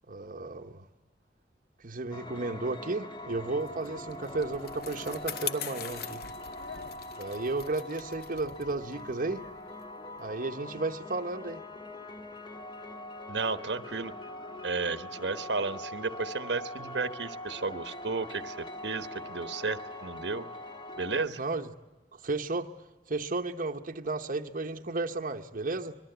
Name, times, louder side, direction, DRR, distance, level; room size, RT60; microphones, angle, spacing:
voice 1, 0.1-0.9 1.8-6.2 7.2-9.5 10.2-11.6 21.4-21.7 22.1-22.7 23.1-26.0, right 3 dB, 50° right, 4 dB, 1.0 m, -33 dB
Glitched Piano, 2.1-21.3, left 1 dB, 25° left, 1.6 m, -43 dB
Bicycle, 3.7-10.4, left 9 dB, 60° left, 1.0 m, -43 dB
voice 2, 13.3-14.1 14.6-20.5 21.0-21.4, right 4 dB, 80° right, 11 dB, 1.2 m, -33 dB
25.5 x 22.5 x 8.0 m, 1.1 s
head